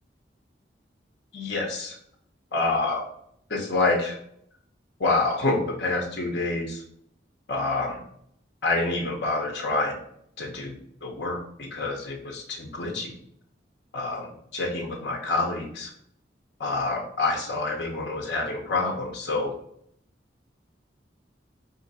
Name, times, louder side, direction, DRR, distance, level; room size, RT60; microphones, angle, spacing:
voice 1, 1.3-2.0 2.5-3.0 3.5-4.2 5.0-6.8 7.5-8.0 8.6-10.0 10.4-13.1 13.9-15.9 16.6-19.5, left 3 dB, 75° left, 0 dB, 0.8 m, -27 dB
4.3 x 2.6 x 4.1 m, 0.68 s
head